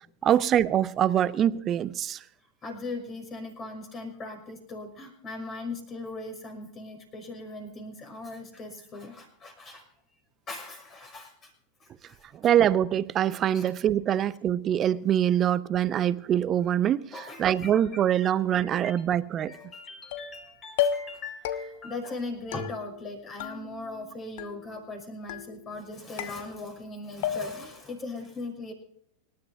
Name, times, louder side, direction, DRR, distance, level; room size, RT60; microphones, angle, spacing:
voice 1, 0.2-2.2 12.3-19.5, right 10 dB, 30° right, 0.6 m, -24 dB
voice 2, 2.6-9.9 10.5-11.5 11.8-12.4 13.5-13.7 17.1-19.0 19.4-28.7, left 2 dB, 25° left, 6.0 m, -40 dB
sound 1, 20.1-20.4 20.8-21.2 21.4-22.0 22.5-23.1 23.4-24.1 24.4-24.9 25.3-25.8 26.2-26.9 27.2-27.8, left 9 dB, 50° left, 1.1 m, -33 dB
26.0 x 12.5 x 2.7 m
figure-of-eight pair, 90°, 0 cm